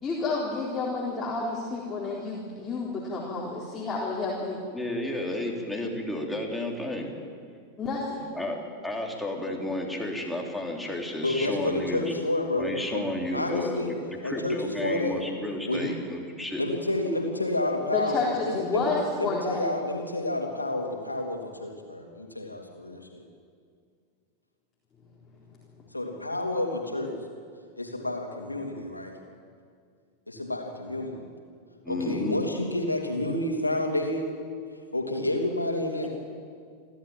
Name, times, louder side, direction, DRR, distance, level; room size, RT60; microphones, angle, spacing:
voice 1, 0.0-4.6 7.8-8.3 17.9-19.6, left 3 dB, 20° left, -5 dB, 4.1 m, -30 dB
voice 2, 4.7-7.1 8.4-12.0 12.6-13.9 14.2-16.6 31.8-32.4, left 1 dB, ahead, 0 dB, 3.9 m, -32 dB
voice 3, 11.2-13.9 14.2-15.2 15.7-16.0 16.6-18.9 19.2-23.2 25.9-27.2 27.8-29.1 30.3-31.3 31.9-34.3 34.9-36.1, left 1 dB, 85° left, 2 dB, 3.3 m, -30 dB
29.0 x 13.0 x 9.1 m, 2.1 s
figure-of-eight pair, 90°, 0 cm